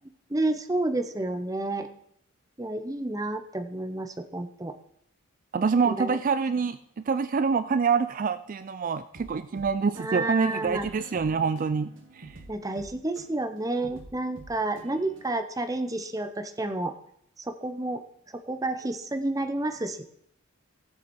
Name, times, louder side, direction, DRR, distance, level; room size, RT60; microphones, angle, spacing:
voice 1, 0.3-1.9 2.6-4.7 5.8-6.2 10.0-10.9 12.5-16.9 17.5-18.0 18.5-20.0, right 2 dB, 15° right, 8 dB, 0.7 m, -30 dB
voice 2, 5.5-12.4, right 5 dB, 40° right, 13 dB, 0.3 m, -26 dB
sound 1, 9.1-15.2, right 2 dB, 60° right, 2.1 m, -48 dB
16.5 x 7.7 x 4.3 m, 0.72 s
head